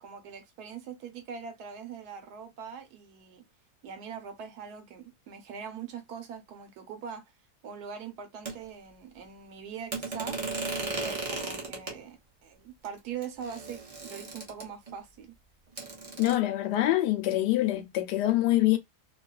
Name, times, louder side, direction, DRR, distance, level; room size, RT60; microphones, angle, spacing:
voice 1, 0.0-3.4 3.8-7.2 7.6-15.3, right 7 dB, 75° right, 1.2 m, -42 dB
sound 1, 8.5-8.6 9.9-12.0 12.8-12.9 13.2-14.9 15.8-16.3, right 3 dB, 45° right, 0.4 m, -35 dB
voice 2, 16.2-18.8, left 15 dB, 90° left, 1.2 m, -25 dB
2.9 x 2.3 x 2.2 m
omnidirectional pair, 1.8 m